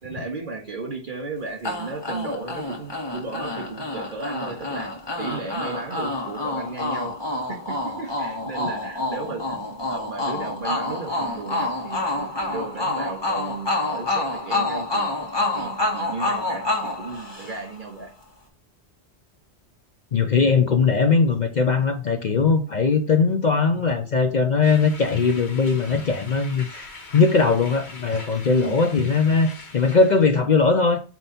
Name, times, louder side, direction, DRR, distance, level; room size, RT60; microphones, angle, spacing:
voice 1, 0.0-7.1 7.5-15.1 15.6-18.1 28.5-28.8, right 3 dB, 50° right, 2 dB, 1.9 m, -34 dB
sound 1, 1.6-17.8, left 2 dB, 25° left, 1.6 m, -28 dB
voice 2, 20.1-31.0, left 4 dB, 50° left, 7 dB, 0.7 m, -20 dB
sound 2, 24.6-30.4, left 3 dB, 70° left, 1.6 m, -42 dB
8.8 x 3.1 x 4.2 m, 0.37 s
omnidirectional pair, 1.1 m